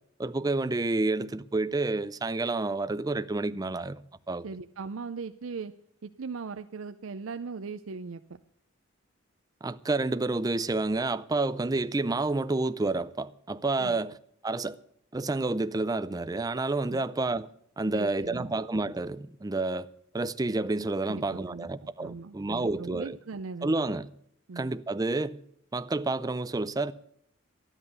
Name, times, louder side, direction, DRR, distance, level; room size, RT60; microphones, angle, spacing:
voice 1, 0.2-4.0 4.3-4.4 9.6-14.1 14.4-14.8 15.1-17.5 17.8-19.9 20.1-23.2 23.6-24.1 24.6-25.4 25.7-26.9, right 2 dB, 20° right, 0.4 m, -29 dB
voice 2, 4.4-5.7 6.0-8.2 13.8-14.0 16.9-17.0 17.8-18.6 21.0-21.2 21.5-23.9 24.5-24.7, right 4 dB, 75° right, 0.5 m, -39 dB
12.5 x 11.0 x 6.7 m
head